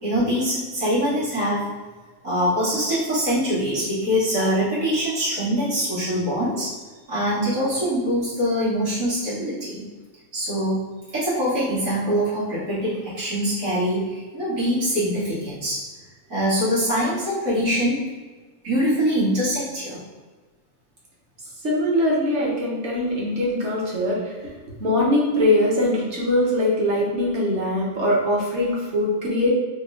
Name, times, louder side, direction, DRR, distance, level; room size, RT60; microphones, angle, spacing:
voice 1, 0.0-1.7 2.2-6.7 7.1-9.9 10.3-10.8 11.1-15.8 16.3-18.0 18.6-20.0, equal, 75° right, -11 dB, 1.9 m, -23 dB
voice 2, 21.6-24.3 24.6-29.5, left 1 dB, 60° right, -5 dB, 1.2 m, -22 dB
3.6 x 2.1 x 3.6 m, 1.3 s
omnidirectional pair, 1.4 m